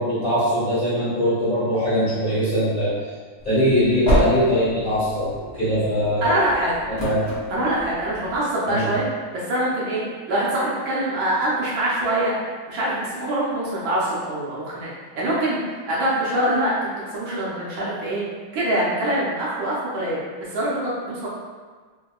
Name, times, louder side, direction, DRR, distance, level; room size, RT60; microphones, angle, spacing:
voice 1, 0.0-2.9 3.4-6.2 7.0-7.2 8.7-8.9, equal, 30° left, -13 dB, 1.1 m, -21 dB
sound 1, 3.4-8.4, right 1 dB, 50° left, 0.5 m, -29 dB
voice 2, 6.2-6.8 7.5-9.1 9.3-10.0 10.3-12.3 12.7-18.2 18.5-21.3, right 1 dB, 75° right, -7 dB, 1.4 m, -24 dB
3.5 x 2.6 x 2.3 m, 1.5 s
omnidirectional pair, 2.3 m